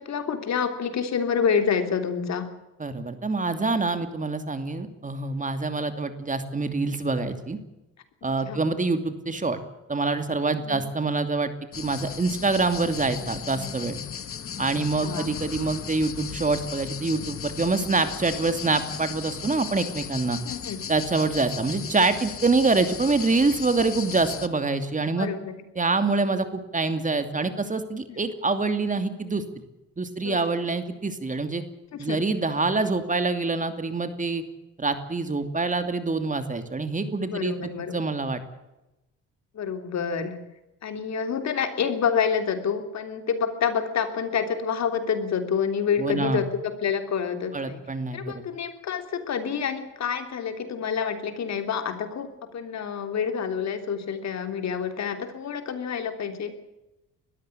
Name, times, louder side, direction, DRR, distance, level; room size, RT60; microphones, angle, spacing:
voice 1, 0.0-2.5 8.4-8.6 10.7-10.8 15.0-15.3 20.4-20.8 25.2-25.5 28.1-28.2 30.2-30.4 31.9-32.2 37.3-37.9 39.5-40.4 40.8-47.8 48.1-56.5, left 6 dB, 60° left, 7 dB, 3.3 m, -28 dB
voice 2, 2.8-7.6 8.2-9.6 9.9-11.5 11.8-13.9 14.6-20.4 20.9-25.3 25.8-29.4 30.0-31.6 32.0-34.4 34.8-37.5 37.9-38.4 46.0-46.4 47.5-48.2, right 3 dB, 25° right, 9 dB, 2.7 m, -25 dB
sound 1, 11.7-24.5, left 8 dB, 45° left, 1.4 m, -36 dB
21.0 x 14.5 x 9.8 m, 0.97 s
cardioid pair, 90°, 30 cm